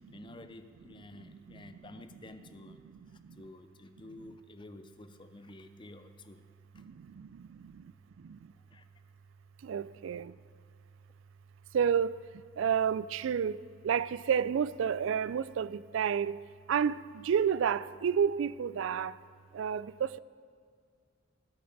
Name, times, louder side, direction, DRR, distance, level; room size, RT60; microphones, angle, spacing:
voice 1, 0.1-2.8 3.4-6.4 8.7-8.9, left 2 dB, 25° left, 0.6 m, -51 dB
voice 2, 9.7-10.3 11.7-12.1 12.6-13.5 13.8-16.3 16.7-17.0 17.3-19.1 19.6-20.2, right 7 dB, 70° right, 0.3 m, -29 dB
19.0 x 8.6 x 4.0 m
head